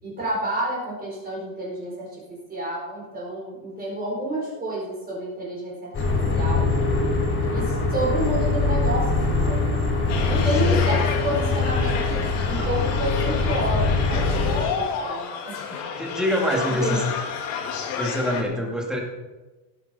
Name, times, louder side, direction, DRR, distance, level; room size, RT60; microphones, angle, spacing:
voice 1, 0.0-5.9 6.3-6.6 7.5-10.0 10.3-15.8 16.8-17.0, right 1 dB, 20° right, -4 dB, 4.4 m, -30 dB
sound 1, 5.9-14.6, left 3 dB, 30° left, 4.4 m, -23 dB
sound 2, 10.1-18.4, left 6 dB, 70° left, 2.4 m, -31 dB
voice 2, 16.0-17.1 17.9-19.0, equal, ahead, -1 dB, 2.3 m, -25 dB
18.0 x 10.0 x 4.3 m, 1.2 s
cardioid pair, 160°, 43 cm